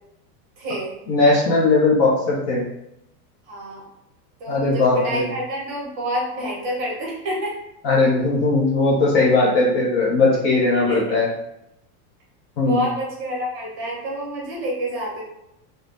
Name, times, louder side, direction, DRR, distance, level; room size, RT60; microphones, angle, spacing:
voice 1, 0.6-0.9 3.5-3.8 4.4-7.5 10.7-11.2 12.6-15.2, right 1 dB, 35° right, -3 dB, 0.9 m, -28 dB
voice 2, 1.1-2.6 4.5-5.3 7.8-11.3 12.6-12.8, left 3 dB, 40° left, -3 dB, 0.5 m, -18 dB
2.5 x 2.0 x 3.2 m, 0.83 s
supercardioid pair, 160°, 48 cm